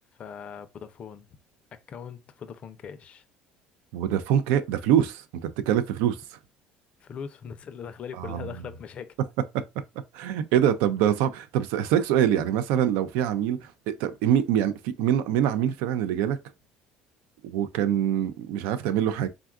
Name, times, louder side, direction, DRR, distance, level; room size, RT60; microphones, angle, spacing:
voice 1, 0.2-1.3 1.7-3.2 7.0-9.1, left 7 dB, 40° left, 0.4 m, -40 dB
voice 2, 3.9-6.2 8.2-8.5 10.1-13.7 14.0-16.4 17.4-19.3, right 10 dB, 85° right, 0.4 m, -24 dB
3.5 x 2.3 x 2.3 m
cardioid pair, 115°, 3 cm